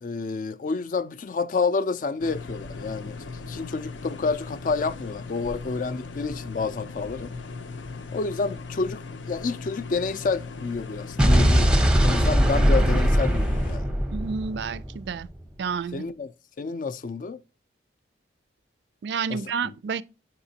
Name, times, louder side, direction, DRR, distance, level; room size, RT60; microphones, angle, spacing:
voice 1, 0.0-7.3 8.1-11.7 12.0-13.9 15.9-16.3 16.6-17.4 19.3-19.7, left 4 dB, 45° left, 0.3 m, -29 dB
sound 1, 2.2-13.8, left 4 dB, 90° left, 0.6 m, -38 dB
Explosion, 11.2-15.3, equal, 5° right, 0.6 m, -20 dB
voice 2, 14.1-15.3 15.6-16.0 19.0-20.0, right 6 dB, 70° right, 0.3 m, -30 dB
8.5 x 5.9 x 2.7 m
head